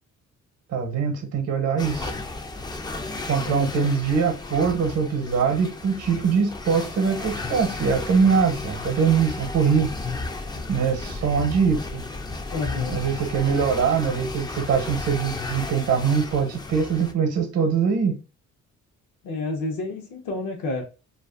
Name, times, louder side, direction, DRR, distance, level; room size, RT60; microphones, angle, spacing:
voice 1, 0.7-2.1 3.3-9.9 10.7-12.0 12.9-18.2, right 6 dB, 55° right, 0.7 m, -23 dB
sound 1, 1.8-17.1, left 3 dB, 15° left, 0.3 m, -34 dB
voice 2, 3.4-3.9 12.5-13.0 19.2-20.8, left 3 dB, 85° left, 0.8 m, -29 dB
2.5 x 2.4 x 2.3 m
cardioid pair, 90°, 30 cm